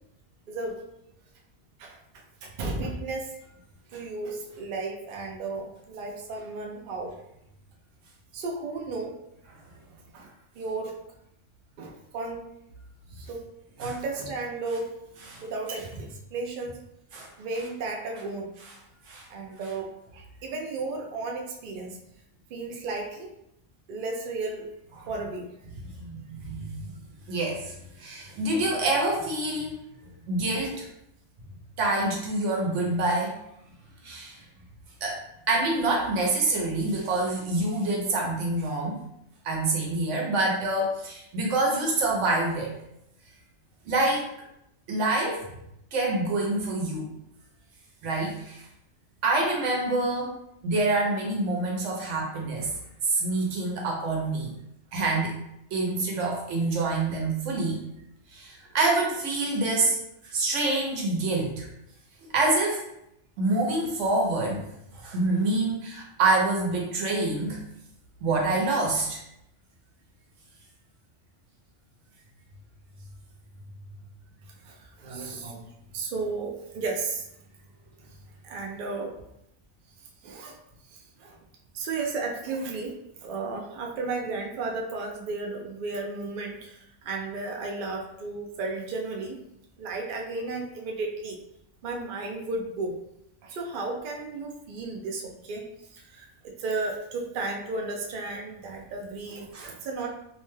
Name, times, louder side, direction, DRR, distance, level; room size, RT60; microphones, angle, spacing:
voice 1, 1.8-3.3 3.9-7.1 8.3-9.2 10.1-10.3 10.5-11.0 11.8-12.4 13.1-13.5 13.8-15.0 15.4-16.8 17.4-18.5 19.3-22.0 22.5-23.3 23.9-24.7 25.1-25.5 74.5-77.3 78.4-79.1 80.0-80.6 80.9-81.4 81.7-89.4 89.8-91.4 91.8-93.0 93.4-100.1, right 3 dB, 60° right, 1 dB, 0.5 m, -34 dB
voice 2, 26.0-26.7 27.3-29.8 30.2-30.8 31.8-33.3 34.0-34.4 35.0-35.2 35.5-39.0 39.4-42.7 43.8-44.3 44.9-45.5 45.9-47.1 48.0-48.6 49.2-50.3 50.6-52.7 53.0-54.5 54.9-55.4 55.7-57.8 58.3-60.0 60.2-61.7 62.3-62.8 63.4-64.6 64.9-67.6 68.2-69.2 99.5-99.7, right 2 dB, 80° right, -1 dB, 1.1 m, -26 dB
2.7 x 2.1 x 3.1 m, 0.80 s
omnidirectional pair, 1.2 m